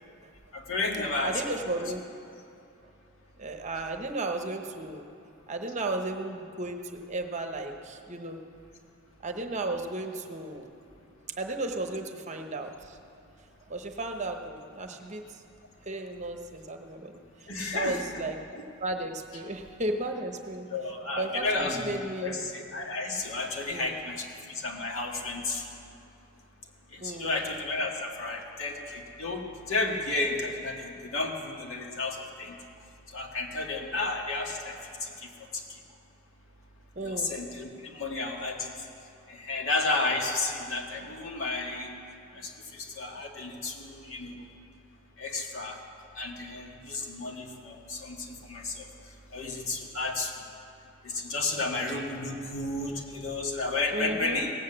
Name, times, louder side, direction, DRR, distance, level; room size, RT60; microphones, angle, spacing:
voice 1, 0.5-1.7 17.5-18.2 18.5-18.6 20.7-25.7 26.9-32.6 33.1-35.8 37.0-38.7 39.3-41.9 42.3-44.4 45.2-45.8 46.1-48.9 49.3-50.3 51.0-54.5, left 3 dB, 70° left, 0 dB, 1.8 m, -32 dB
voice 2, 1.2-2.0 3.4-5.0 5.5-8.4 9.2-10.7 11.4-13.0 13.7-15.2 15.9-17.2 17.7-20.7 21.2-22.4 23.7-24.0 27.0-27.4 36.9-37.3 53.9-54.4, right 2 dB, 35° right, 5 dB, 0.9 m, -34 dB
17.5 x 8.1 x 7.7 m, 2.6 s
head